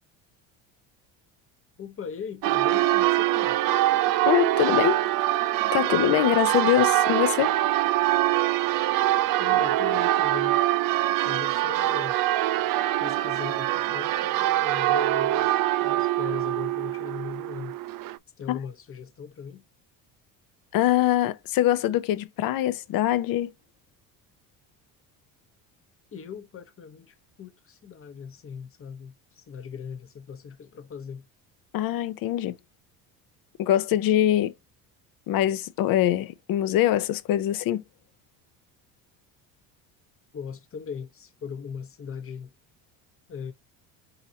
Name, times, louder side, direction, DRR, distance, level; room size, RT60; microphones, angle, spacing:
voice 1, 1.8-3.6 9.4-10.6 11.2-12.2 13.0-17.8 18.4-19.6 26.1-31.3 40.3-42.5 43.3-43.5, left 6 dB, 35° left, 0.9 m, -39 dB
Church bell, 2.4-18.2, right 15 dB, 55° right, 0.5 m, -24 dB
voice 2, 4.2-5.0 5.7-7.5 18.5-18.6 20.7-23.5 31.7-32.6 33.6-34.5 35.3-37.8, left 12 dB, 55° left, 0.7 m, -23 dB
4.2 x 3.9 x 2.7 m
supercardioid pair, 80°, 40 cm